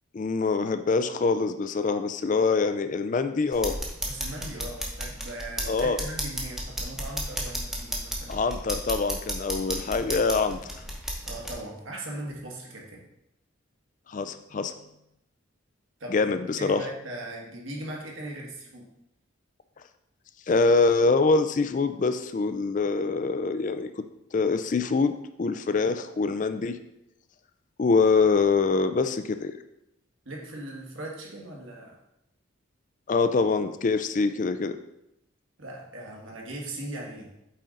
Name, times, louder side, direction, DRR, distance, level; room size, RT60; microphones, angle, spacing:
voice 1, 0.1-3.8 5.7-6.0 8.3-10.6 14.1-14.7 16.1-16.8 20.5-23.9 24.3-25.1 25.4-26.8 27.8-29.5 33.1-34.8, left 4 dB, 40° left, 10 dB, 0.3 m, -24 dB
sound 1, 3.5-11.5, equal, ahead, 0.8 m, -33 dB
voice 2, 4.0-8.4 11.3-13.0 16.0-18.9 30.2-32.0 35.6-37.3, right 1 dB, 75° right, -2 dB, 1.7 m, -39 dB
8.3 x 3.8 x 3.9 m, 0.84 s
head